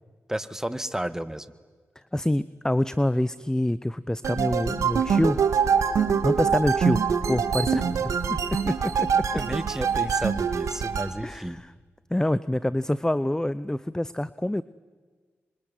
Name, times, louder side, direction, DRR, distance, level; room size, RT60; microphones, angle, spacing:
voice 1, 0.3-1.5 9.3-11.6, right 1 dB, 10° right, 14 dB, 1.6 m, -32 dB
voice 2, 2.1-5.4 6.2-7.0 7.3-9.1 11.2-11.7 12.1-14.6, left 1 dB, 10° left, 17 dB, 0.7 m, -26 dB
sound 1, 4.2-11.1, right 7 dB, 80° right, 1.8 m, -24 dB
26.0 x 23.5 x 9.5 m, 1.5 s
supercardioid pair, 45°, 5 cm